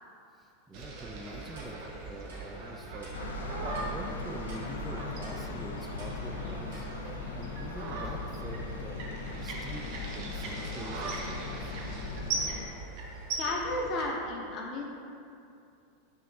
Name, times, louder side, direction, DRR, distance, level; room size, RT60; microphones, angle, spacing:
voice 1, 0.4-9.1 9.4-9.9 10.1-11.8, right 1 dB, 15° right, 1 dB, 0.3 m, -45 dB
sound 1, 0.7-14.1, right 3 dB, 55° right, 0.6 m, -40 dB
Clock, 1.5-1.7 2.3-2.4 3.0-3.1 3.7-3.9 4.5-4.6 5.2-5.4 6.0-6.1 6.7-6.8, right 2 dB, 80° right, 1.1 m, -50 dB
sound 2, 3.1-12.7, left 3 dB, 85° left, 0.3 m, -39 dB
voice 2, 13.4-14.8, left 2 dB, 45° left, -1 dB, 0.6 m, -33 dB
5.3 x 3.0 x 2.3 m, 2.6 s
hypercardioid pair, 95°, 0 cm